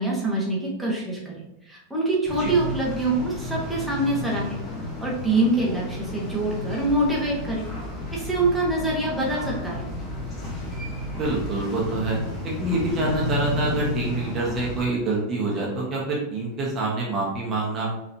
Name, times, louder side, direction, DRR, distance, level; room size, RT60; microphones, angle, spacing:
voice 1, 0.0-1.4 1.7-4.6 5.0-7.7 8.1-9.9, right 2 dB, ahead, -5 dB, 1.4 m, -25 dB
sound 1, 2.3-14.8, left 1 dB, 20° left, 1.4 m, -32 dB
voice 2, 10.9-12.2 12.4-17.9, right 2 dB, 25° right, -4 dB, 1.2 m, -26 dB
5.2 x 3.3 x 2.8 m, 0.93 s
figure-of-eight pair, 90°, 0 cm